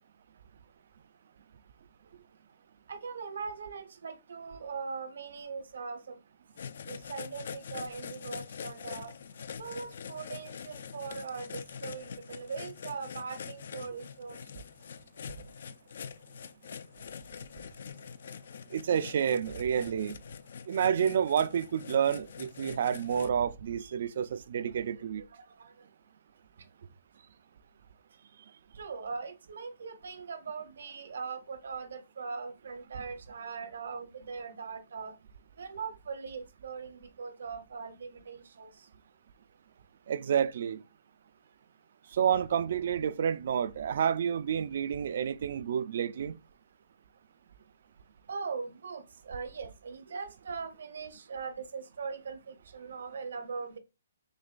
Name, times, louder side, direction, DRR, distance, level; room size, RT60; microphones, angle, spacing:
voice 1, 2.9-6.2 6.9-9.1 9.6-14.4 24.8-25.0 25.3-25.8 28.7-35.1 35.6-38.7 48.3-53.8, right 5 dB, 70° right, 0.9 m, -40 dB
sound 1, 6.6-23.3, left 7 dB, 55° left, 0.3 m, -44 dB
voice 2, 18.7-20.2 20.7-25.2 40.1-40.8 42.1-46.4, right 8 dB, 50° right, 0.3 m, -29 dB
6.3 x 2.2 x 2.5 m
hypercardioid pair, 170°, 0 cm